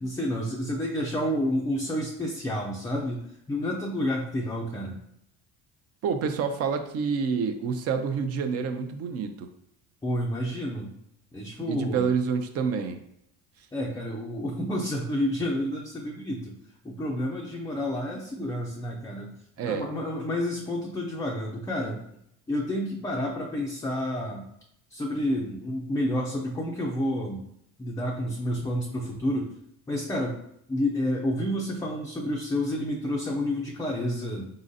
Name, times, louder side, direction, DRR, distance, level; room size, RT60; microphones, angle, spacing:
voice 1, 0.0-5.0 10.0-10.9 11.3-12.0 13.7-16.5 16.8-19.3 19.6-22.0 22.5-24.4 24.9-27.4 27.8-29.5 29.9-30.4 30.7-34.5, left 1 dB, 10° left, -1 dB, 0.4 m, -29 dB
voice 2, 6.0-9.5 11.7-13.0 19.6-19.9, right 6 dB, 45° right, 8 dB, 0.5 m, -28 dB
4.0 x 3.8 x 2.6 m, 0.74 s
cardioid pair, 125°, 34 cm